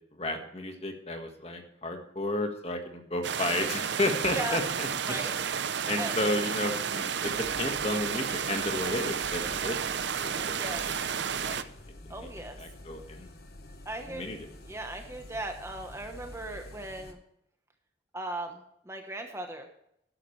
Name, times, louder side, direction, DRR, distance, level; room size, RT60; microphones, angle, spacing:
voice 1, 0.1-4.9 5.9-10.6 10.8-11.6 12.0-12.3 12.6-13.3 14.0-14.5, left 1 dB, 30° left, 5 dB, 1.6 m, -33 dB
sound 1, 3.2-11.6, right 7 dB, 70° right, 0.7 m, -32 dB
sound 2, 7.2-17.1, left 1 dB, 55° left, 1.2 m, -49 dB
voice 2, 10.6-11.0 12.1-12.6 13.8-14.2 14.7-17.2 18.1-18.6 18.9-19.8, right 2 dB, 15° right, 4 dB, 1.0 m, -37 dB
12.5 x 11.5 x 3.2 m, 0.76 s
head